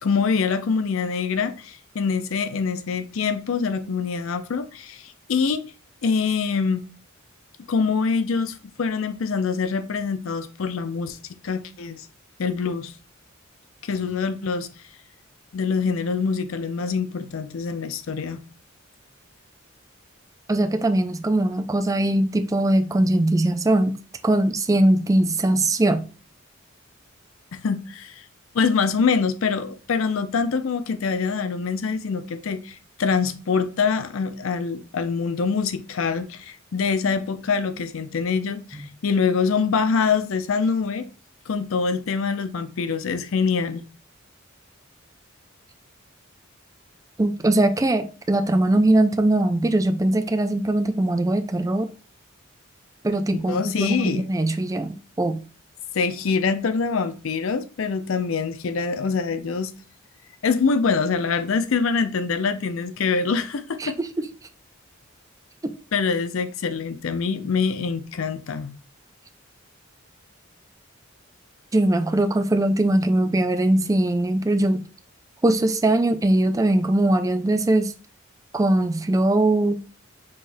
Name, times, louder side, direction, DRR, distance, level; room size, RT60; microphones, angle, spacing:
voice 1, 0.0-5.6 6.0-6.8 7.7-11.2 11.4-12.1 12.4-12.9 13.8-14.7 15.5-18.4 27.5-28.3 28.5-41.1 41.5-43.8 53.5-54.3 55.9-59.7 60.4-64.0 65.9-68.7, left 5 dB, 75° left, 0.5 m, -24 dB
voice 2, 20.5-24.0 24.2-26.0 38.7-38.9 47.2-51.9 53.0-55.4 63.8-64.3 65.6-65.7 71.7-74.9 75.4-77.9 78.5-79.8, right 1 dB, 15° right, 0.4 m, -21 dB
5.5 x 3.4 x 2.6 m
head